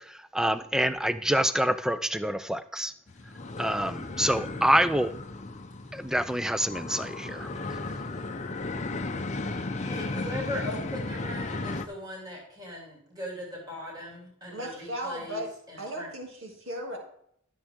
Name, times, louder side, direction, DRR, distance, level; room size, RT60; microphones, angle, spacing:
voice 1, 0.3-2.9 3.6-5.1 5.9-7.5, right 1 dB, 5° right, 12 dB, 0.4 m, -26 dB
sound 1, 3.1-11.8, left 2 dB, 35° left, 0.7 m, -35 dB
voice 2, 9.8-15.4 15.7-16.1, left 1 dB, 20° right, -3 dB, 3.0 m, -39 dB
voice 3, 14.5-15.5 15.8-17.0, equal, 60° right, 1 dB, 2.6 m, -36 dB
13.0 x 7.3 x 3.7 m, 0.69 s
head